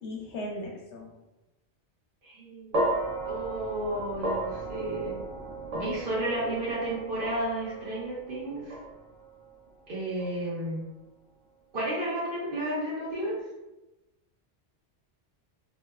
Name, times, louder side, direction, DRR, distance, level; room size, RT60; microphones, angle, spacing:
voice 1, 0.0-1.2, left 1 dB, 75° left, -1 dB, 0.9 m, -37 dB
voice 2, 2.2-2.8 3.2-5.2 5.7-8.7 9.9-10.8 11.7-13.4, right 1 dB, 50° right, -7 dB, 1.0 m, -32 dB
sound 1, 2.7-11.1, right 2 dB, 80° right, 1.0 m, -35 dB
2.8 x 2.1 x 2.3 m, 1.0 s
omnidirectional pair, 1.2 m